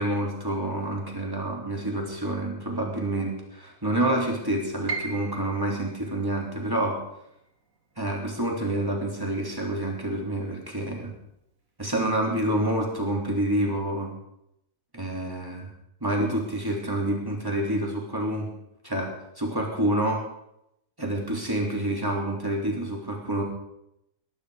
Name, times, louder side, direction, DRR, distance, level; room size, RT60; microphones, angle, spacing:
voice 1, 0.0-7.0 8.0-11.1 11.8-14.1 14.9-15.7 16.0-18.5 18.8-19.1 19.4-20.2 21.0-23.4, right 1 dB, 15° right, -1 dB, 3.4 m, -28 dB
Piano, 4.9-10.8 11.1-12.3 12.7-12.8 13.5-13.8, right 4 dB, 90° right, 2.0 m, -41 dB
20.0 x 11.0 x 5.0 m, 0.81 s
omnidirectional pair, 1.4 m